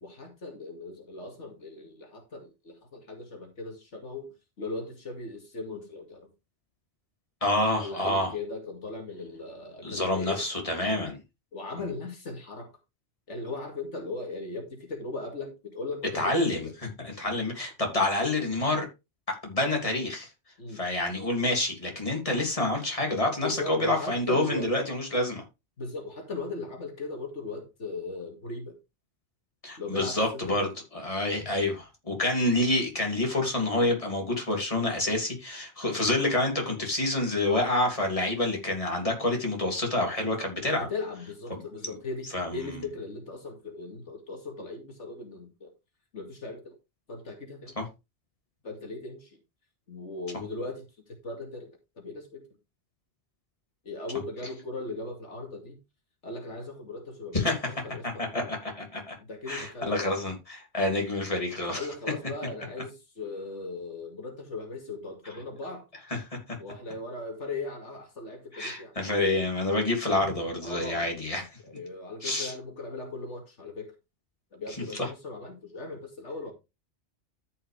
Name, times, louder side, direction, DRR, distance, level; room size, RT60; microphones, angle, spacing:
voice 1, 0.0-6.3 7.8-10.4 11.5-12.7 13.3-16.7 20.6-20.8 23.4-24.7 25.8-28.8 29.8-30.7 40.8-45.7 46.1-46.7 47.1-47.8 48.6-49.4 49.9-52.5 53.8-55.8 56.2-58.5 59.2-60.2 61.7-65.8 66.6-68.9 70.6-71.2 71.6-73.9 74.5-76.5, left 3 dB, 85° left, 2.6 m, -38 dB
voice 2, 7.4-8.3 9.8-11.2 16.1-18.9 19.3-20.3 20.7-25.4 29.6-30.7 30.9-40.9 41.5-41.6 41.8-41.9 42.3-42.5 47.8-47.9 57.3-57.5 58.0-59.1 59.5-61.8 66.1-66.4 68.5-71.4 72.2-72.5 75.0-75.1, left 2 dB, 30° left, 3.2 m, -28 dB
13.5 x 5.7 x 3.4 m
omnidirectional pair, 1.2 m